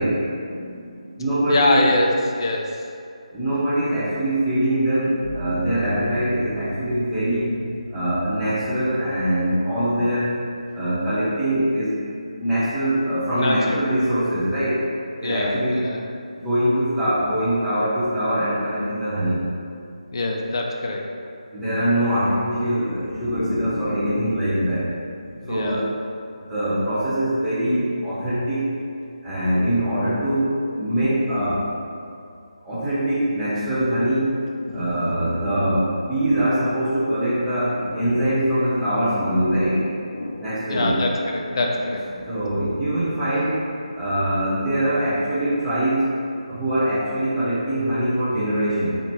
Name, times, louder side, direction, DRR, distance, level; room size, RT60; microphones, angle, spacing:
voice 1, 0.0-1.2 1.5-2.9 7.0-7.1 13.4-13.9 15.2-16.0 20.1-21.1 22.8-24.3 24.6-24.8 25.2-25.9 31.2-31.4 33.6-33.7 34.7-35.9 37.8-38.3 39.1-39.4 40.1-42.4, left 2 dB, 40° left, 0 dB, 0.4 m, -26 dB
voice 2, 1.2-1.8 3.3-7.5 7.9-10.4 10.7-11.9 12.3-14.8 15.2-15.8 16.4-19.4 21.5-24.9 25.5-25.9 26.4-28.7 29.2-31.7 32.6-34.3 34.7-39.9 40.4-41.0 42.3-43.6 43.9-46.1 46.5-48.9, right 1 dB, 5° right, -13 dB, 0.7 m, -23 dB
sound 1, 5.2-12.9, right 1 dB, 45° right, 0.9 m, -39 dB
4.2 x 2.8 x 3.0 m, 2.4 s
figure-of-eight pair, 155°, 4 cm